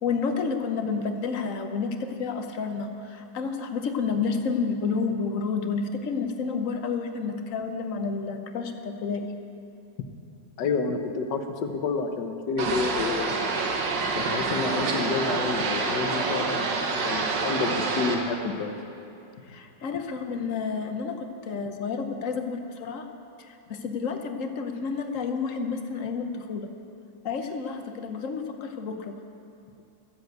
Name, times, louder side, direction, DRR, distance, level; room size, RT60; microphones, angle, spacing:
voice 1, 0.0-9.3 19.5-23.1 23.4-26.7 27.2-29.2, left 5 dB, 55° left, 6 dB, 1.1 m, -30 dB
voice 2, 10.6-13.4 14.3-18.7, left 4 dB, 75° left, 6 dB, 1.6 m, -29 dB
sound 1, 12.6-18.2, right 4 dB, 75° right, 1.8 m, -27 dB
13.0 x 7.8 x 8.0 m, 2.7 s
omnidirectional pair, 1.9 m